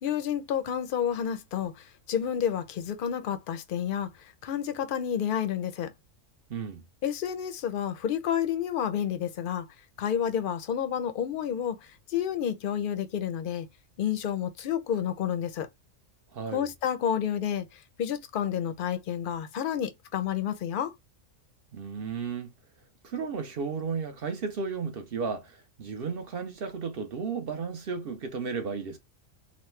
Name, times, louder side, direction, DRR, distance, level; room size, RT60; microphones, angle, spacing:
voice 1, 0.0-5.9 7.0-9.7 10.0-13.7 14.0-15.7 16.5-20.9, left 9 dB, 60° left, 0.6 m, -30 dB
voice 2, 6.5-6.8 16.3-16.7 21.7-22.5 23.0-29.0, right 5 dB, 55° right, 0.7 m, -34 dB
3.0 x 2.1 x 3.1 m
omnidirectional pair, 1.4 m